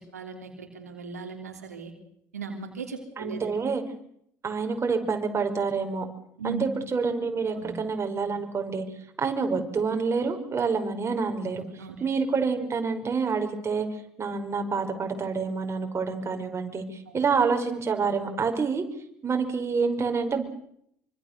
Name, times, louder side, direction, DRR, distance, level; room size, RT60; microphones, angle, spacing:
voice 1, 0.0-1.9 2.3-3.4 6.4-6.7 7.5-7.7 11.6-12.0 17.1-17.2, right 5 dB, 90° right, 4 dB, 3.1 m, -38 dB
voice 2, 3.2-3.8 4.4-6.1 6.4-8.8 9.2-11.6 12.0-13.9 14.2-18.8 19.2-20.4, right 5 dB, 30° right, 4 dB, 5.3 m, -27 dB
26.0 x 25.0 x 6.8 m, 0.73 s
hypercardioid pair, 65°, 8 cm